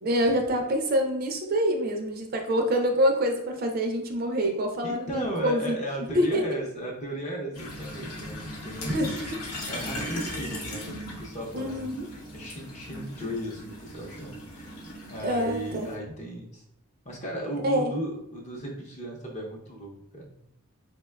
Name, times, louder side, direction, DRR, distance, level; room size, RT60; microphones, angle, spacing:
voice 1, 0.0-5.7 6.1-6.4 8.9-9.4 11.5-12.1 15.2-15.9 17.6-17.9, equal, 40° right, 3 dB, 0.4 m, -26 dB
voice 2, 4.8-9.1 9.7-14.8 15.1-16.6 17.0-20.4, right 1 dB, 35° left, -1 dB, 0.6 m, -36 dB
sound 1, 7.5-15.9, equal, 90° left, 0.8 m, -38 dB
4.3 x 2.1 x 2.2 m, 0.74 s
head